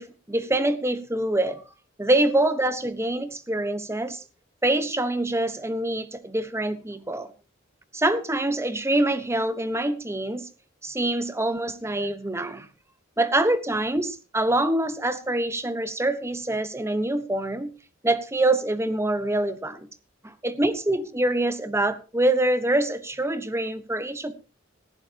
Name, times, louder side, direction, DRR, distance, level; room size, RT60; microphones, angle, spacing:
voice 1, 0.0-1.6 2.0-4.2 4.6-7.3 7.9-10.5 10.8-12.7 13.2-17.7 18.0-19.9 20.2-24.3, right 1 dB, 15° right, 1.1 m, -25 dB
18.0 x 15.0 x 2.9 m
head